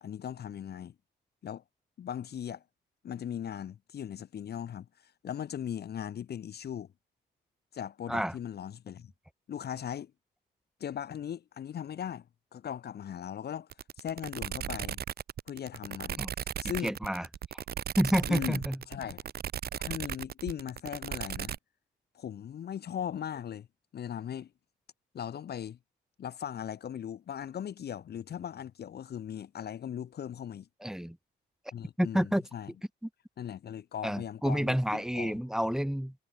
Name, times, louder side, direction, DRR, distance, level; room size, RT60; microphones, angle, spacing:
voice 1, 0.0-0.9 1.4-1.6 2.0-2.6 3.0-6.9 7.7-9.1 9.5-10.1 10.8-12.3 12.5-13.7 14.0-15.0 15.5-16.3 16.6-16.9 18.3-18.6 18.9-19.2 19.8-21.5 22.1-23.7 23.9-24.5 25.1-25.8 26.2-30.7 31.7-32.7 33.4-35.4, left 9 dB, 55° left, 1.2 m, -38 dB
sound 1, 13.7-21.6, right 9 dB, 50° right, 0.9 m, -36 dB
voice 2, 16.8-17.3 17.5-17.6 18.0-18.8 30.8-31.2 32.0-32.4 34.0-36.1, equal, 5° right, 2.4 m, -29 dB
cardioid pair, 90°, 20 cm